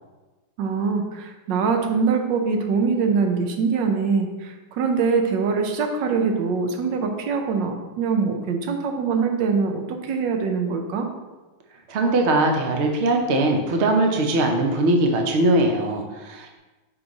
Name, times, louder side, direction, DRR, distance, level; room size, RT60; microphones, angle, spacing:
voice 1, 0.6-11.1, right 5 dB, 70° right, 5 dB, 1.2 m, -23 dB
voice 2, 11.9-16.6, right 2 dB, 85° right, 2 dB, 0.6 m, -21 dB
6.1 x 3.1 x 5.2 m, 1.2 s
omnidirectional pair, 2.3 m